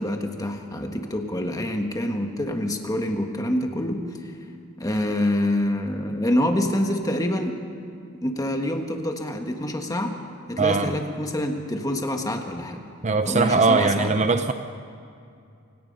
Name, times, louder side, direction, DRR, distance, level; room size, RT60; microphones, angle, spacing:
voice 1, 0.0-4.3 4.8-7.6 8.2-10.2 10.5-12.8 13.2-14.1, left 1 dB, 15° left, 4 dB, 1.6 m, -26 dB
voice 2, 10.6-10.9 13.0-14.5, right 4 dB, 35° right, 8 dB, 0.7 m, -20 dB
27.5 x 18.0 x 5.5 m, 2.4 s
head